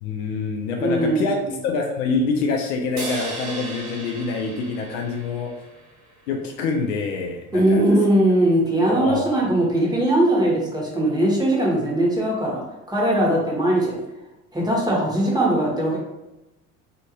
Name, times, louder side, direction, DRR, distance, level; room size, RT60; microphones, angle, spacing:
voice 1, 0.0-1.4 1.6-5.5 6.3-7.8 8.8-9.3, left 4 dB, 60° left, 2 dB, 0.6 m, -26 dB
voice 2, 0.8-1.5 7.5-12.6 12.9-13.9 14.5-16.0, right 1 dB, 10° right, -4 dB, 1.0 m, -20 dB
sound 1, 3.0-6.4, right 2 dB, 50° right, 1.2 m, -35 dB
2.6 x 2.5 x 2.9 m, 0.96 s
figure-of-eight pair, 60°, 42 cm